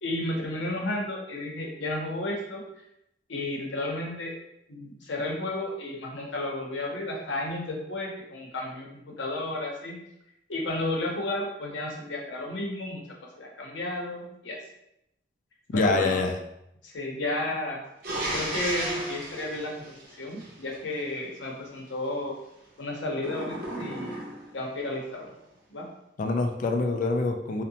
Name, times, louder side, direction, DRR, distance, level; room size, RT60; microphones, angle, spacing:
voice 1, 0.0-2.6 3.3-4.3 4.7-10.0 10.5-13.0 13.4-14.6 15.7-16.2 16.8-17.8 18.3-19.9 20.2-22.3 22.8-24.2 24.5-25.3 25.7-25.9, left 2 dB, 90° left, -1 dB, 0.7 m, -32 dB
voice 2, 15.7-16.3 26.2-27.6, left 3 dB, 45° left, 4 dB, 0.3 m, -25 dB
sound 1, 18.0-20.8 23.2-24.6, right 1 dB, 55° right, 0.7 m, -34 dB
2.6 x 2.1 x 2.7 m, 0.82 s
head